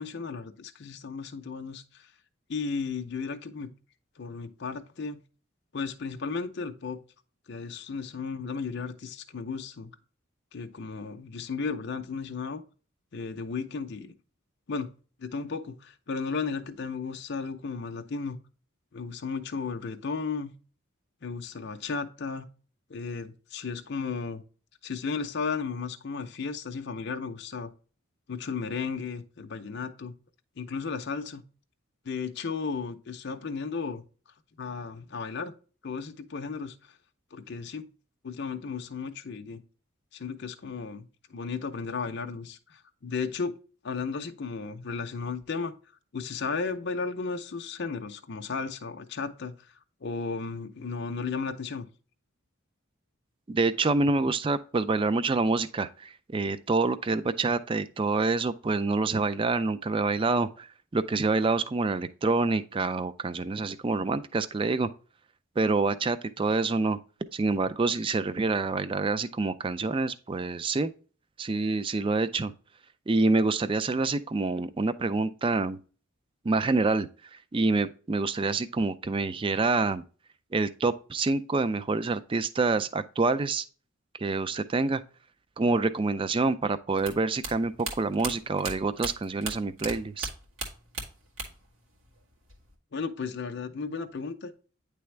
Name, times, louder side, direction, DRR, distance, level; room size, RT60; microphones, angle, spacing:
voice 1, 0.0-2.1 2.5-3.7 4.2-5.2 5.7-7.0 7.5-9.9 10.5-12.6 13.1-14.1 14.7-14.9 15.2-18.4 18.9-20.5 21.2-22.5 22.9-24.4 24.8-27.7 28.3-30.2 30.6-31.4 32.0-34.0 34.6-35.5 35.8-37.0 37.3-37.9 38.2-39.6 40.1-43.5 43.8-45.8 46.1-49.7 50.0-51.9 92.9-94.5, left 5 dB, 55° left, 0.5 m, -34 dB
voice 2, 53.5-64.9 65.6-67.0 67.3-70.9 71.4-72.5 73.1-75.8 76.4-80.0 80.5-83.6 84.2-85.0 85.6-90.3, right 3 dB, 25° right, 0.3 m, -27 dB
sound 1, 87.0-89.9 90.2-91.7 92.0-92.7, right 3 dB, 75° right, 1.9 m, -36 dB
9.4 x 3.4 x 3.2 m
head